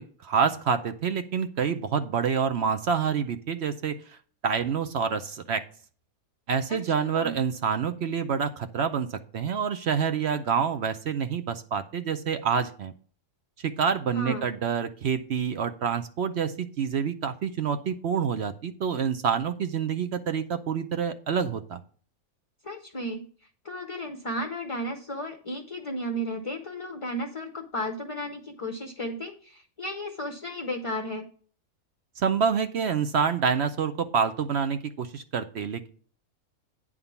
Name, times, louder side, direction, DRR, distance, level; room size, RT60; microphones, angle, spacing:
voice 1, 0.0-4.2 4.4-5.6 6.5-12.9 13.6-21.8 32.2-35.9, right 6 dB, 60° right, 9 dB, 0.8 m, -27 dB
voice 2, 7.0-7.4 14.1-14.5 22.6-23.3 23.6-31.3, equal, 30° left, 4 dB, 0.6 m, -34 dB
9.5 x 3.7 x 6.9 m, 0.44 s
omnidirectional pair, 1.5 m